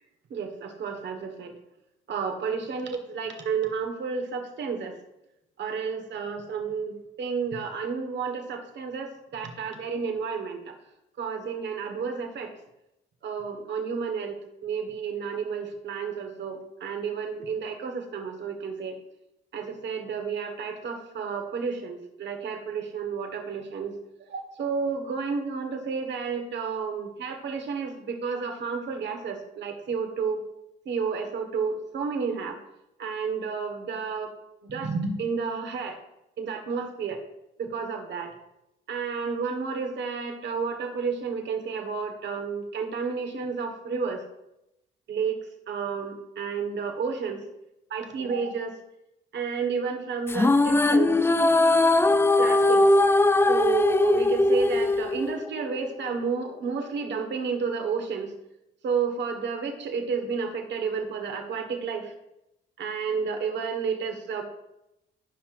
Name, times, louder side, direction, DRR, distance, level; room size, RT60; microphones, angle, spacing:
voice 1, 0.3-1.5 2.1-4.9 5.6-10.7 11.2-12.5 13.2-18.9 19.5-24.0 24.3-30.4 30.8-32.6 33.0-34.3 34.6-36.0 36.4-37.2 37.6-38.3 38.9-44.2 45.1-47.4 47.9-48.7 49.3-51.2 52.4-52.8 53.5-58.3 58.8-62.1 62.8-64.4, right 5 dB, 65° right, 5 dB, 1.5 m, -31 dB
sound 1, 50.3-55.8, left 2 dB, 10° left, 0.4 m, -20 dB
15.0 x 5.9 x 2.6 m, 0.87 s
cardioid pair, 90°, 20 cm